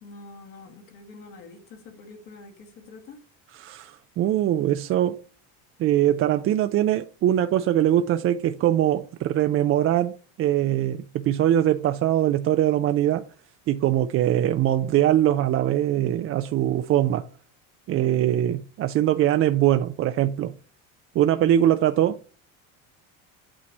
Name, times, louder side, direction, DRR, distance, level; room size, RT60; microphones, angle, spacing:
voice 1, 0.0-3.2, left 3 dB, 70° left, 2.4 m, -46 dB
voice 2, 3.6-5.2 5.8-13.3 13.7-17.3 17.9-20.5 21.1-22.3, right 12 dB, 40° right, 0.4 m, -22 dB
8.6 x 3.1 x 5.3 m
cardioid pair, 120°, 35 cm